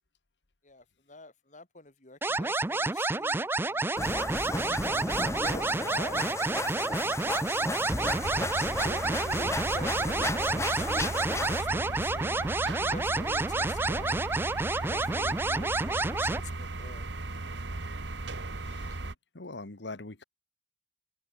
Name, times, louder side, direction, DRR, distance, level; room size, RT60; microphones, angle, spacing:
voice 1, 0.6-4.0 5.4-6.6 8.8-17.1, left 2 dB, 45° left, 4.0 m, -46 dB
sound 1, 2.2-16.4, right 2 dB, 15° right, 0.4 m, -29 dB
sound 2, 4.0-11.6, left 2 dB, 15° left, 1.1 m, -35 dB
sound 3, 8.0-19.1, right 2 dB, 85° right, 1.6 m, -37 dB
voice 2, 18.6-20.2, left 2 dB, 80° left, 1.7 m, -43 dB
head